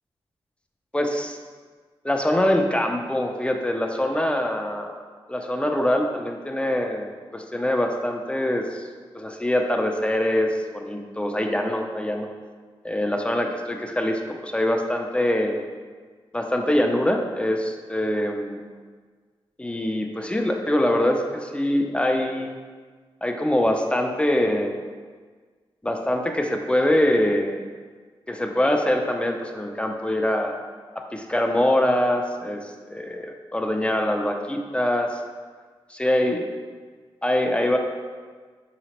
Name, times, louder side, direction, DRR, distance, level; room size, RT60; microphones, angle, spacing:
voice 1, 0.9-1.4 2.0-5.0 5.3-8.9 9.1-12.3 12.8-15.6 16.3-18.6 19.6-22.5 23.2-24.7 25.8-27.6 28.3-30.6 31.0-35.2 35.9-36.5 37.2-37.8, left 1 dB, 10° left, 3 dB, 0.4 m, -24 dB
4.1 x 2.9 x 2.9 m, 1.5 s
cardioid pair, 55°, 10 cm